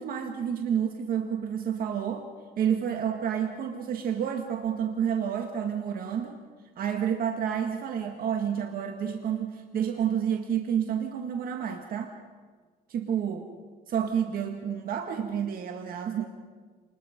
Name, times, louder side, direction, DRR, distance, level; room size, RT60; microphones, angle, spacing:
voice 1, 0.0-2.3 2.6-6.4 6.8-12.1 12.9-13.5 13.9-16.2, right 8 dB, 60° right, 4 dB, 1.8 m, -29 dB
27.5 x 21.0 x 5.3 m, 1.5 s
cardioid pair, 110°, 17 cm